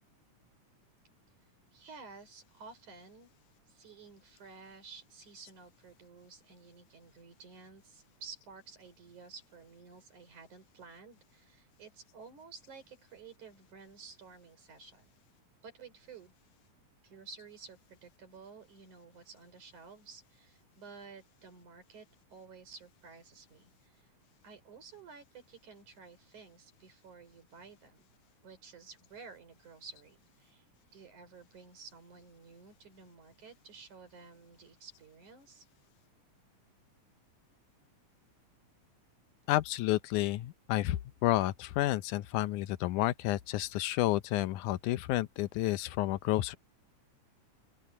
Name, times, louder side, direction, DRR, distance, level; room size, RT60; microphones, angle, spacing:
voice 1, 1.7-3.3 3.7-15.1 15.6-16.3 17.0-24.1 24.4-28.1 28.4-30.7 30.9-35.7, right 5 dB, 70° right, 6.4 m, -53 dB
voice 2, 39.5-46.6, left 15 dB, 80° left, 2.2 m, -30 dB
open air
omnidirectional pair, 3.5 m